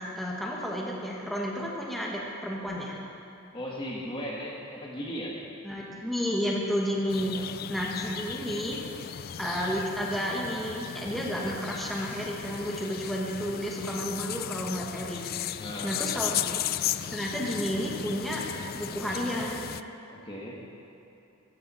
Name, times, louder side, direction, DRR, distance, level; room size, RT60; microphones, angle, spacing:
voice 1, 0.0-3.0 5.6-7.4 7.7-8.8 9.4-15.2 15.8-16.7 17.1-18.4 18.7-19.6, equal, ahead, -3 dB, 1.7 m, -31 dB
voice 2, 3.5-5.4 7.3-7.5 15.6-16.1 20.1-20.6, equal, 25° left, -3 dB, 1.5 m, -37 dB
sound 1, 7.1-19.8, left 10 dB, 45° left, 0.3 m, -36 dB
16.5 x 14.5 x 4.3 m, 2.9 s
head